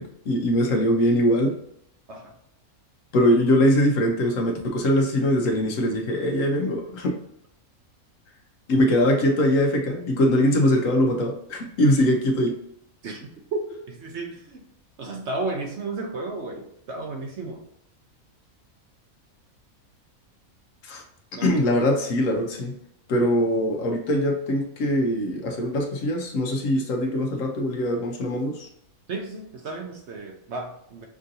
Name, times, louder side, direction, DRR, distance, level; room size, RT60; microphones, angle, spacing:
voice 1, 0.0-1.6 3.1-7.2 8.7-12.6 20.9-21.0 21.4-22.7 23.1-28.7, equal, 65° left, 3 dB, 1.0 m, -22 dB
voice 2, 13.0-14.6 15.0-17.6 21.3-21.5 29.1-31.1, right 3 dB, 60° right, 2 dB, 0.8 m, -33 dB
6.1 x 2.6 x 2.6 m, 0.77 s
omnidirectional pair, 1.5 m